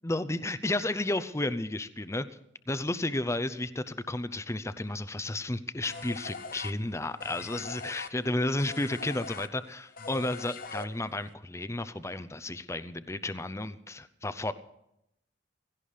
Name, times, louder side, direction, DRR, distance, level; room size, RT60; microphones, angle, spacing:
voice 1, 0.0-2.3 2.7-14.5, left 2 dB, 15° left, 13 dB, 0.6 m, -32 dB
sound 1, 5.8-11.3, left 4 dB, 50° left, 0.7 m, -42 dB
16.5 x 16.5 x 5.0 m, 0.80 s
head